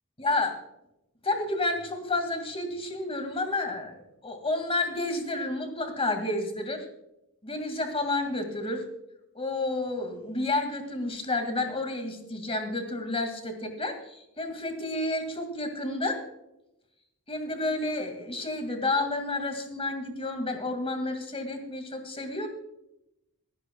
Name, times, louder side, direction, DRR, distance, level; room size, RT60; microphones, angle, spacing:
voice 1, 0.2-0.6 1.2-6.9 7.4-8.9 9.3-16.2 17.3-22.5, left 2 dB, 25° left, 5 dB, 2.1 m, -30 dB
28.5 x 9.8 x 2.3 m, 0.86 s
head